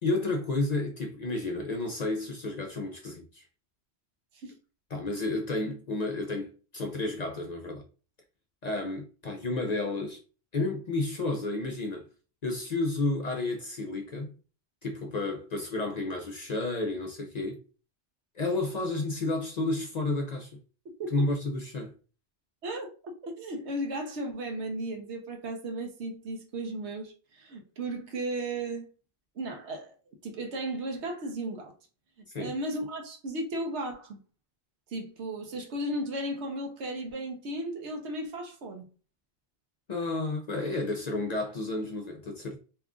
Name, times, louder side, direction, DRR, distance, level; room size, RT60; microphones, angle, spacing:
voice 1, 0.0-3.4 4.9-7.8 8.6-10.2 10.5-12.1 12.4-14.3 14.8-17.6 18.4-20.5 21.1-21.9 32.3-32.5 39.9-42.6, left 2 dB, 50° left, 0.5 m, -31 dB
voice 2, 23.2-28.9 29.4-29.9 30.2-31.7 32.4-34.2 34.9-38.8, right 1 dB, 80° right, 1.1 m, -35 dB
2.9 x 2.4 x 3.6 m
omnidirectional pair, 1.1 m